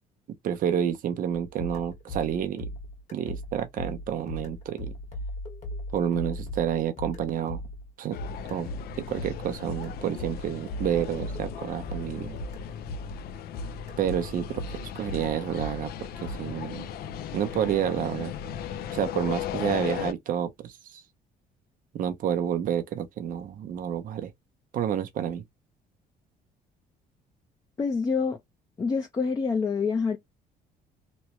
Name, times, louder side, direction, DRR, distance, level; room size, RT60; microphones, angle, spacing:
voice 1, 0.4-2.7 3.1-4.9 5.9-7.6 8.0-8.2 8.5-8.7 9.0-12.4 14.0-16.9 17.3-18.3 18.9-21.0 21.9-24.3 24.7-25.4, right 9 dB, 55° right, 0.7 m, -29 dB
sound 1, 1.3-13.3 13.5-16.4, left 1 dB, 45° left, 1.5 m, -38 dB
sound 2, 8.1-20.1, left 9 dB, 65° left, 0.5 m, -37 dB
voice 2, 27.8-28.4 28.8-30.2, left 5 dB, 20° left, 0.6 m, -26 dB
3.0 x 2.2 x 2.9 m
cardioid pair, 110°, 17 cm